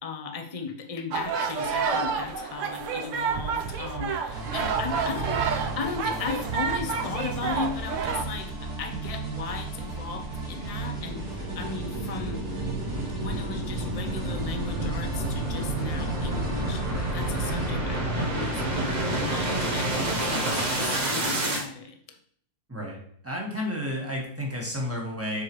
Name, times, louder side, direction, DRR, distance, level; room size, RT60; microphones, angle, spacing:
voice 1, 0.0-12.5 13.2-22.2, left 5 dB, 40° left, 5 dB, 0.5 m, -36 dB
sound 1, 1.1-8.2, right 6 dB, 60° right, 0.9 m, -29 dB
sound 2, 4.3-17.7, right 3 dB, 85° right, 2.6 m, -36 dB
sound 3, 10.1-21.6, right 1 dB, 35° right, 0.9 m, -29 dB
voice 2, 22.7-25.4, left 1 dB, 10° right, -2 dB, 1.5 m, -32 dB
7.8 x 4.8 x 3.1 m, 0.64 s
omnidirectional pair, 1.6 m